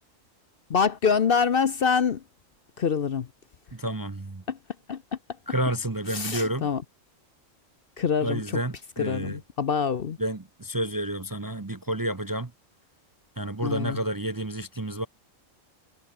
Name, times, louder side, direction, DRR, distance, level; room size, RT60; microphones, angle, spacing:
voice 1, 0.7-2.2 2.8-3.3 4.5-4.6 4.9-5.0 6.1-6.8 8.0-8.4 9.0-10.2 13.6-14.0, left 6 dB, 50° left, 0.9 m, -25 dB
voice 2, 3.7-4.4 5.5-6.7 8.2-9.4 10.2-12.5 13.4-15.1, right 1 dB, 20° right, 0.7 m, -30 dB
omnidirectional pair, 1.4 m